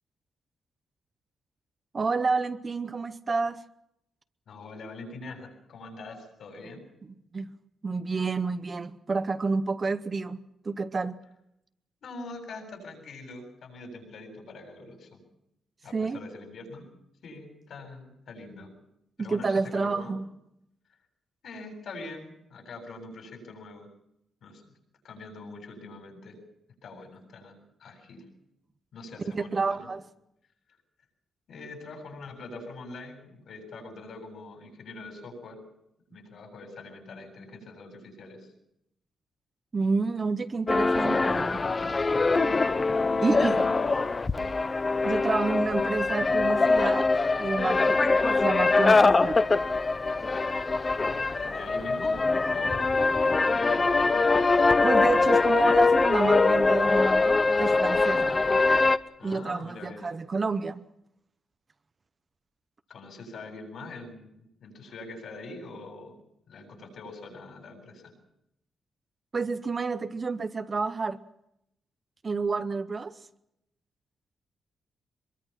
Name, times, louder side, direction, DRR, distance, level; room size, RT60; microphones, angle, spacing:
voice 1, 1.9-3.6 7.3-7.5 7.8-10.4 10.6-11.2 15.9-16.2 19.2-20.2 29.3-30.0 39.7-41.7 43.2-43.6 45.0-47.1 47.4-49.4 54.8-58.4 59.2-60.8 69.3-71.2 72.2-73.1, right 4 dB, 30° right, 0.8 m, -29 dB
voice 2, 4.5-6.9 12.0-15.2 15.8-16.9 17.2-18.7 19.2-20.1 21.4-23.9 24.4-24.7 25.0-26.4 26.8-28.3 28.9-29.9 31.5-35.6 36.1-38.5 43.1-43.9 50.9-52.2 52.5-53.9 59.2-60.1 62.9-66.2 66.5-68.1, left 2 dB, 65° left, 7.7 m, -44 dB
sound 1, 40.7-59.0, left 3 dB, 25° left, 0.8 m, -23 dB
24.0 x 22.5 x 5.8 m
wide cardioid pair, 145°, 0 cm